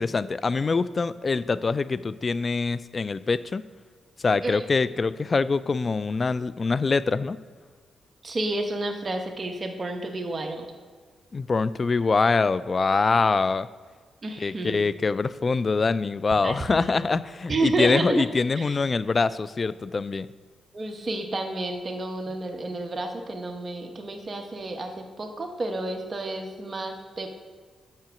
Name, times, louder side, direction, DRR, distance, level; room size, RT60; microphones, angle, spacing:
voice 1, 0.0-3.6 4.2-7.4 11.3-13.7 14.4-20.3, left 4 dB, 35° left, 16 dB, 0.3 m, -24 dB
voice 2, 8.2-10.7 14.2-14.8 16.4-17.0 17.5-18.2 18.5-18.8 20.7-27.3, right 2 dB, 35° right, 4 dB, 1.1 m, -30 dB
7.5 x 5.6 x 6.2 m, 1.5 s
cardioid pair, 80°, 0 cm